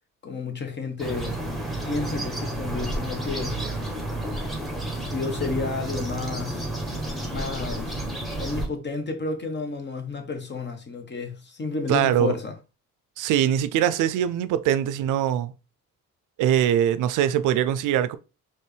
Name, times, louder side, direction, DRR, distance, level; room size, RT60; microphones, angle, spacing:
voice 1, 0.2-1.4 1.8-3.6 5.0-6.6 7.3-8.1 8.4-12.5, left 4 dB, 35° left, 1.1 m, -31 dB
sound 1, 1.0-8.7, right 1 dB, ahead, 1.3 m, -31 dB
voice 2, 11.9-12.3 13.2-15.5 16.4-18.2, right 10 dB, 85° right, 0.5 m, -22 dB
4.4 x 3.1 x 3.3 m
cardioid pair, 90°, 30 cm